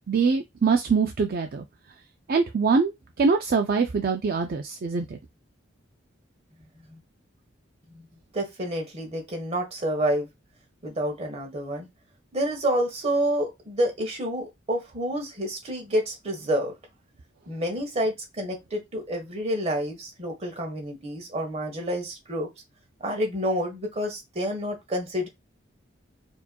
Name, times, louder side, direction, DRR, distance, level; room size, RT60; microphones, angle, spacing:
voice 1, 0.1-1.6 2.3-2.9 3.2-5.2, right 5 dB, 50° right, 0.4 m, -23 dB
voice 2, 8.3-10.3 10.8-11.9 12.3-16.7 17.5-22.5 23.0-25.3, equal, 35° right, 1.2 m, -28 dB
4.5 x 2.8 x 2.2 m
head